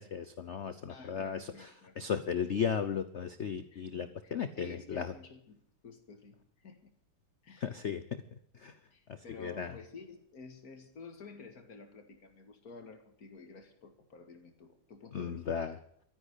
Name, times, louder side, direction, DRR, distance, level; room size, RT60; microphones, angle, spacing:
voice 1, 0.0-5.1 7.6-8.2 8.5-8.8 9.1-9.8 15.1-15.8, left 7 dB, 75° left, 12 dB, 0.6 m, -36 dB
voice 2, 0.9-1.9 3.7-5.6 5.8-6.4 6.6-6.9 7.4-7.7 8.9-15.6, left 4 dB, 45° left, 7 dB, 2.4 m, -51 dB
13.0 x 10.0 x 10.0 m, 0.68 s
omnidirectional pair, 2.3 m